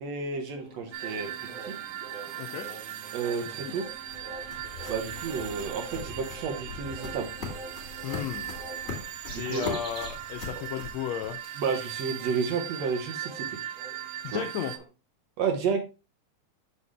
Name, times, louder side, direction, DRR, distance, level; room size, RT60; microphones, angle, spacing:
voice 1, 0.0-1.3 3.1-3.8 4.9-7.3 9.3-9.8 11.6-13.6 14.3-14.4 15.4-15.8, right 5 dB, 65° right, 4 dB, 2.0 m, -31 dB
sound 1, 0.6-10.3 10.5-10.7 11.1-14.8, right 2 dB, 45° right, 1.0 m, -46 dB
sound 2, 0.9-14.8, right 11 dB, 85° right, 1.4 m, -39 dB
sound 3, 3.6-11.8, left 5 dB, 25° left, 2.3 m, -42 dB
voice 2, 8.0-8.5 9.4-11.4 14.2-14.7, left 10 dB, 90° left, 5 dB, 1.5 m, -34 dB
6.9 x 5.7 x 3.2 m, 0.29 s
omnidirectional pair, 3.7 m